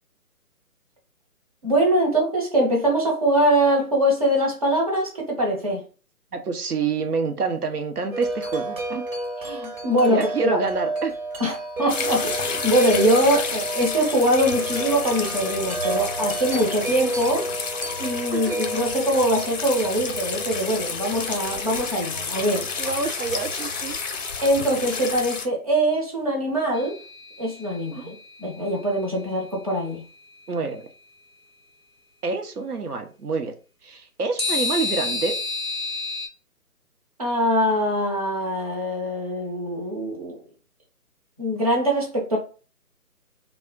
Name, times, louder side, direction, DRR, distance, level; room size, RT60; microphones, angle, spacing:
voice 1, 1.6-5.8 9.5-10.6 11.4-17.5 18.0-22.7 24.4-27.0 27.4-28.1 28.4-30.0 37.2-40.4 41.4-42.4, right 1 dB, 25° right, 0.6 m, -23 dB
voice 2, 6.3-9.0 10.1-11.1 18.3-18.6 22.8-24.0 30.5-30.9 32.2-33.5 33.8-35.4, right 4 dB, 85° right, 0.7 m, -27 dB
Wind chime, 8.1-22.1, right 1 dB, 60° right, 1.0 m, -31 dB
sound 1, 11.9-25.5, left 4 dB, 55° left, 0.7 m, -30 dB
sound 2, 26.7-28.0 34.4-36.3, left 3 dB, 20° left, 0.5 m, -29 dB
2.3 x 2.1 x 3.8 m
figure-of-eight pair, 150°, 45 cm